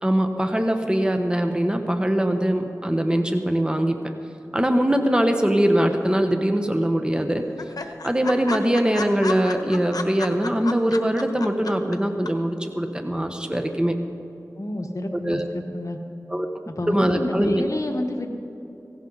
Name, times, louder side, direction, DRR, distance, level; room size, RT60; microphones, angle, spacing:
voice 1, 0.0-4.0 4.5-7.4 8.0-13.9 15.1-15.5 16.3-16.5 16.9-17.7, right 1 dB, 15° right, 5 dB, 1.1 m, -22 dB
sound 1, 5.9-6.5 6.8-6.9 7.2-7.3 7.6-12.0 12.3-12.4, left 3 dB, 80° left, 1.1 m, -32 dB
voice 2, 14.6-16.0 16.7-18.3, left 1 dB, 55° left, 4 dB, 1.3 m, -29 dB
17.0 x 16.5 x 4.0 m, 2.9 s
wide cardioid pair, 45°, 6 cm